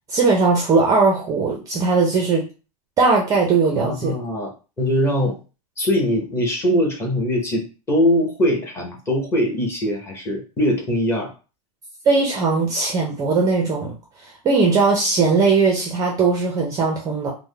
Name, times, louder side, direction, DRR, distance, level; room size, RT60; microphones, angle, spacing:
voice 1, 0.1-2.4 3.0-4.2 12.1-13.9 14.2-17.3, right 4 dB, 15° right, 0 dB, 0.4 m, -19 dB
voice 2, 3.8-4.5 4.8-5.4 5.8-11.3, equal, 10° left, -1 dB, 0.7 m, -21 dB
3.5 x 2.0 x 3.2 m, 0.34 s
supercardioid pair, 155°, 21 cm